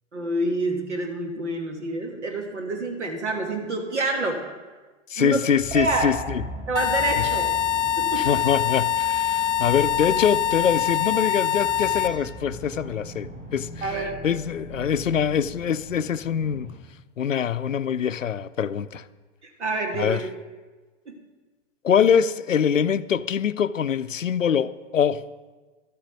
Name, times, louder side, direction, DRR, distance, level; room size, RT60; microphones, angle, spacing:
voice 1, 0.1-4.4 5.2-5.4 5.7-6.1 6.7-7.5 8.0-8.4 13.8-14.2 19.6-20.3 21.1-21.2, right 2 dB, 65° right, 1.6 m, -27 dB
voice 2, 5.1-6.4 8.2-16.7 17.2-19.0 20.0-20.2 21.8-25.2, left 8 dB, 80° left, 0.6 m, -24 dB
sound 1, 5.6-16.8, right 1 dB, 20° right, 2.6 m, -40 dB
sound 2, 6.8-12.1, left 10 dB, 35° left, 0.9 m, -24 dB
13.0 x 8.6 x 4.6 m
figure-of-eight pair, 105°, 39 cm